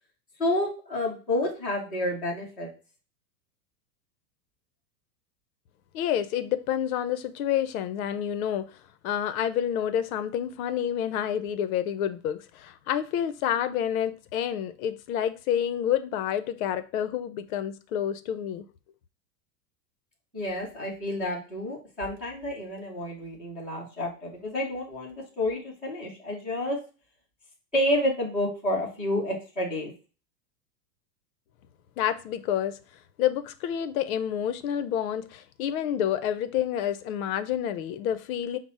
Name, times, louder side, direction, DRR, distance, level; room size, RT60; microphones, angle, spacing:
voice 1, 0.4-2.7 20.3-26.8 27.7-29.9, left 1 dB, 5° right, 0.3 m, -29 dB
voice 2, 5.9-8.8 9.0-18.6 32.0-32.8 33.2-38.6, left 10 dB, 60° left, 0.5 m, -28 dB
5.9 x 2.0 x 4.1 m
supercardioid pair, 150°, 49 cm